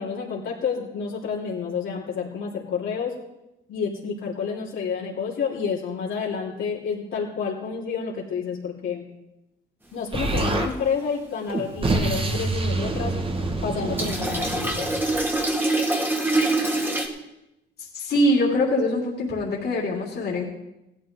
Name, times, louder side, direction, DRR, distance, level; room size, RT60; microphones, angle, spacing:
voice 1, 0.0-3.1 3.7-9.0 9.9-13.2 13.6-14.9, left 6 dB, 75° left, -5 dB, 3.4 m, -29 dB
Explosion, 10.1-10.7 11.5-15.4, right 2 dB, 25° right, 1.6 m, -26 dB
sound 1, 10.4-10.6 14.0-17.1, right 2 dB, 10° right, 2.0 m, -24 dB
voice 2, 17.9-20.4, left 1 dB, 55° left, -3 dB, 3.2 m, -23 dB
16.5 x 12.5 x 3.8 m, 0.90 s
cardioid pair, 90°, 20 cm